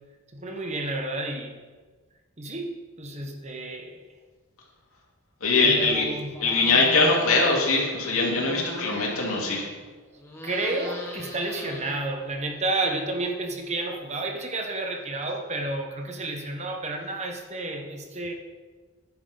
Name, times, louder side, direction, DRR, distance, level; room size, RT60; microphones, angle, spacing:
voice 1, 0.3-1.5 2.4-4.0 5.6-6.3 10.4-18.3, right 2 dB, 30° right, 3 dB, 1.1 m, -31 dB
voice 2, 5.4-6.0 6.4-9.6, left 3 dB, 70° left, -3 dB, 3.3 m, -22 dB
sound 1, 6.3-7.7 8.0-9.9 10.2-12.4, left 1 dB, 10° left, 1.5 m, -39 dB
14.0 x 10.5 x 3.9 m, 1.4 s
head